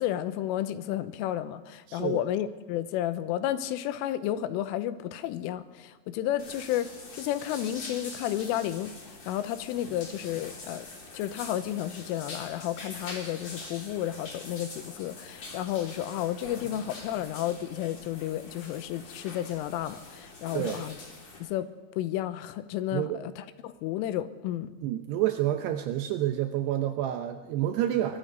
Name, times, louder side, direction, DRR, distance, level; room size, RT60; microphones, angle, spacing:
voice 1, 0.0-10.9 11.1-21.0 21.4-21.7 22.0-24.7, left 12 dB, 90° left, 12 dB, 3.5 m, -32 dB
voice 2, 1.9-2.2 20.5-20.8 22.9-23.2 24.8-28.2, right 12 dB, 75° right, 7 dB, 2.5 m, -29 dB
sound 1, 6.4-21.4, left 2 dB, 35° left, 4.6 m, -44 dB
23.5 x 23.0 x 5.3 m, 1.3 s
omnidirectional pair, 5.7 m